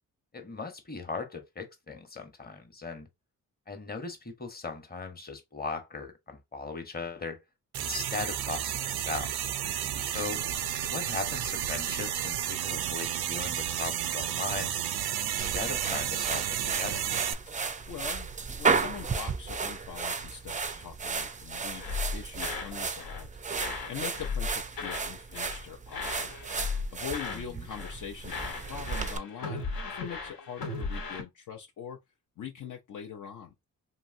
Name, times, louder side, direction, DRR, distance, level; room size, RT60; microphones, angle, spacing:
voice 1, 0.3-3.1 3.7-7.4 7.8-9.3 10.1-10.4 10.8-14.7 15.3-17.0 27.3-27.7, left 4 dB, 25° left, 1.0 m, -38 dB
sound 1, 7.7-17.3, right 10 dB, 80° right, 0.5 m, -32 dB
voice 2, 9.6-10.1 17.9-18.3 18.6-21.8 22.1-23.3 23.9-26.3 26.9-32.0 32.4-33.5, left 8 dB, 55° left, 0.6 m, -42 dB
sound 2, 15.4-29.2, right 5 dB, 20° right, 0.4 m, -34 dB
sound 3, 21.8-22.7 23.0-23.3 23.6-25.1 25.3-25.6 25.9-27.4 27.7-28.0 28.3-31.2, left 4 dB, 75° left, 1.0 m, -36 dB
2.9 x 2.6 x 2.5 m
cardioid pair, 65°, 37 cm